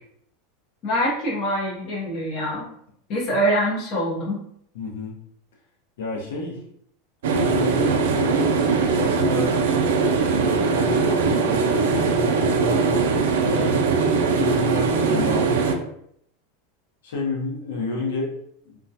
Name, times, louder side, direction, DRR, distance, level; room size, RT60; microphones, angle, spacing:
voice 1, 0.8-2.7 3.1-4.4, equal, 30° left, -5 dB, 0.6 m, -24 dB
voice 2, 4.7-5.2 6.0-6.6 7.3-9.6 10.5-13.8 14.4-15.9 17.0-18.3 18.6-18.8, left 3 dB, 80° left, -2 dB, 0.7 m, -30 dB
sound 1, 7.2-15.8, right 4 dB, 85° right, 0.3 m, -21 dB
2.3 x 2.1 x 2.6 m, 0.70 s
supercardioid pair, 175°, 0 cm